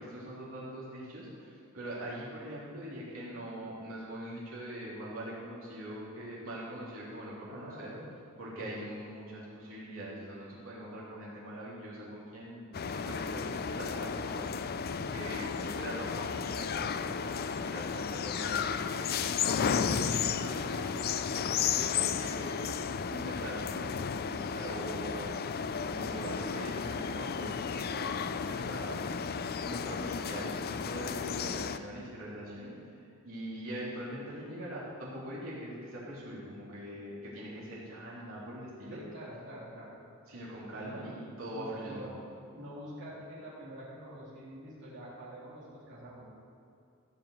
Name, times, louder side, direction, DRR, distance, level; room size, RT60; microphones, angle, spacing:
voice 1, 0.0-7.9 8.4-20.9 21.1-22.6 23.1-25.3 25.7-29.3 29.6-32.9 33.2-39.0 40.3-42.1, right 1 dB, 75° right, -7 dB, 3.5 m, -42 dB
voice 2, 7.5-8.1 8.6-8.8 21.7-21.9 38.9-40.0 40.7-41.1 41.5-42.2 42.5-46.3, equal, 60° right, -8 dB, 3.3 m, -46 dB
sound 1, 12.7-31.8, left 6 dB, 50° left, 0.4 m, -33 dB
15.0 x 5.9 x 7.9 m, 2.4 s
head